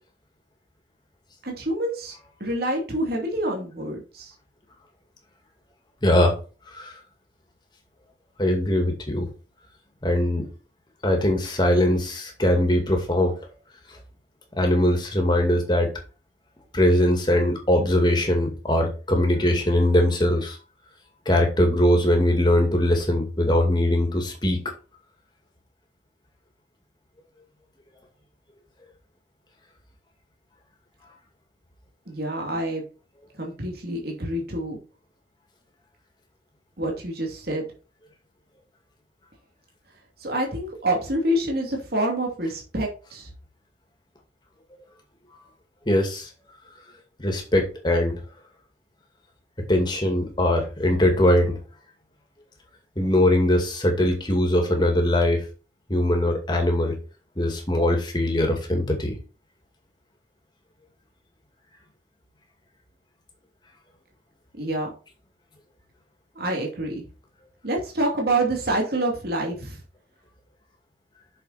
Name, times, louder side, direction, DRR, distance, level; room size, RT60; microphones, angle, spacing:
voice 1, 1.4-2.1 2.4-4.3 32.1-32.8 33.4-34.8 36.8-37.7 40.2-43.3 64.5-64.9 66.3-67.1 67.6-69.8, right 1 dB, 55° right, 0 dB, 2.7 m, -27 dB
voice 2, 6.0-6.3 6.7-6.9 8.4-9.3 10.0-10.5 11.0-13.3 14.6-15.9 16.7-20.6 21.3-24.6 45.9-46.3 47.2-48.2 49.7-51.6 53.0-55.4 55.9-57.0 57.4-59.1, left 1 dB, 25° left, 3 dB, 2.3 m, -21 dB
7.9 x 6.6 x 4.3 m, 0.34 s
head